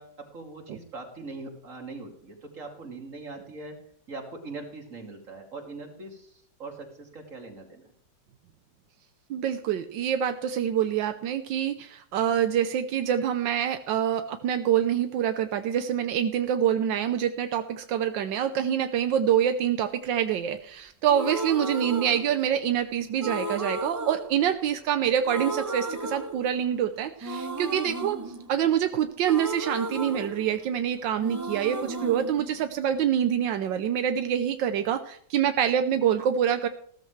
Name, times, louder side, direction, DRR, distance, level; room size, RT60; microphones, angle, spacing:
voice 1, 0.0-3.7 4.1-7.8, right 3 dB, 45° right, 1 dB, 3.1 m, -41 dB
voice 2, 9.3-28.2 28.5-36.7, right 9 dB, 85° right, 8 dB, 1.5 m, -26 dB
sound 1, 21.1-22.8 23.2-25.0 25.2-26.8 27.2-30.9 31.2-33.2, right 2 dB, 25° right, 0.3 m, -34 dB
16.0 x 13.5 x 3.2 m, 0.62 s
omnidirectional pair, 2.0 m